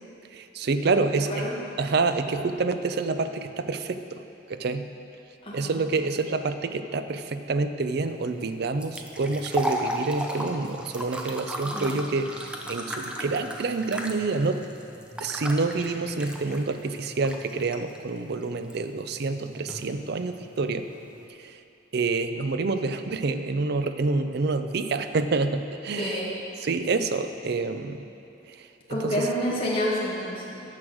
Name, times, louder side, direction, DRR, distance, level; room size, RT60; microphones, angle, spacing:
voice 1, 0.3-1.5 1.8-4.2 4.5-4.9 5.5-14.6 15.2-20.9 21.4-21.6 21.9-26.2 26.6-28.0 28.5-29.3, right 3 dB, 60° right, 9 dB, 0.5 m, -27 dB
voice 2, 5.4-5.8 11.6-12.0 26.0-26.3 28.9-30.6, equal, 30° left, -6 dB, 2.0 m, -29 dB
sound 1, 7.9-21.3, equal, 5° right, 0.6 m, -37 dB
9.6 x 6.4 x 6.3 m, 2.8 s
head